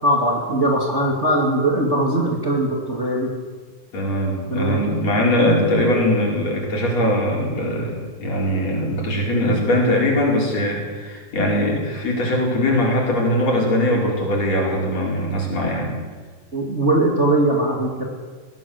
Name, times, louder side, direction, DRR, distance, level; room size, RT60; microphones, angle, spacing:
voice 1, 0.0-3.3 4.5-4.8 16.5-18.0, right 1 dB, 25° right, -1 dB, 2.5 m, -20 dB
voice 2, 3.9-16.0, left 1 dB, 55° left, -2 dB, 5.9 m, -21 dB
20.5 x 17.5 x 7.9 m, 1.4 s
omnidirectional pair, 3.7 m